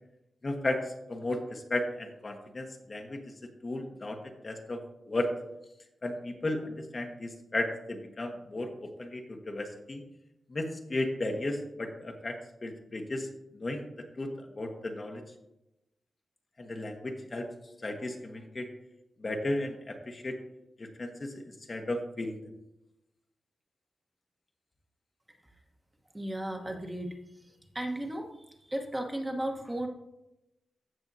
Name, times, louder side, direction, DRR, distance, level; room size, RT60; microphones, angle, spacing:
voice 1, 0.4-3.2 3.6-5.3 6.0-10.0 10.5-13.3 13.5-13.9 14.2-15.2 16.6-17.5 17.8-18.7 19.2-20.3 20.8-21.3 21.7-22.4, left 2 dB, 35° left, 3 dB, 1.1 m, -34 dB
voice 2, 26.1-27.2 27.7-28.3 28.6-29.9, right 1 dB, 15° right, 2 dB, 1.2 m, -34 dB
15.0 x 6.1 x 2.7 m, 0.91 s
cardioid pair, 85°, 0 cm